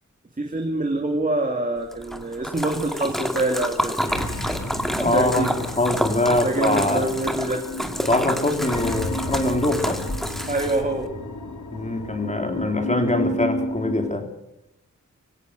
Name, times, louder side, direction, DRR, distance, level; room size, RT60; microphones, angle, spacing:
voice 1, 0.4-4.0 5.1-5.5 6.4-7.6 10.5-11.1, right 2 dB, 25° right, 2.6 m, -25 dB
Splash splatter, 1.9-11.0, equal, ahead, 2.2 m, -29 dB
sound 1, 4.1-14.1, left 1 dB, 75° left, 2.6 m, -32 dB
voice 2, 5.0-7.2 8.0-10.1 11.7-14.3, left 2 dB, 25° left, 3.8 m, -23 dB
25.0 x 17.0 x 6.5 m
wide cardioid pair, 120°, 30 cm